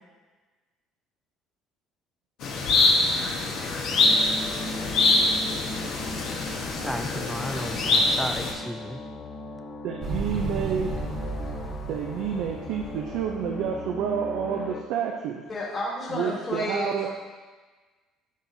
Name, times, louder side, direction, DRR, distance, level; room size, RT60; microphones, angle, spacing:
sound 1, 2.4-8.5, left 2 dB, 70° left, 1.2 m, -24 dB
sound 2, 4.0-14.8, left 2 dB, 50° left, 0.8 m, -38 dB
voice 1, 6.8-9.0, equal, ahead, 8 dB, 0.5 m, -34 dB
voice 2, 9.8-11.0 11.9-15.4 16.1-17.1, right 7 dB, 75° right, 1 dB, 0.5 m, -29 dB
Motorcycle, 10.0-13.9, right 3 dB, 50° right, 0.9 m, -34 dB
voice 3, 15.5-17.1, left 1 dB, 30° left, -6 dB, 2.1 m, -31 dB
11.0 x 4.1 x 2.7 m, 1.3 s
supercardioid pair, 85°, 0 cm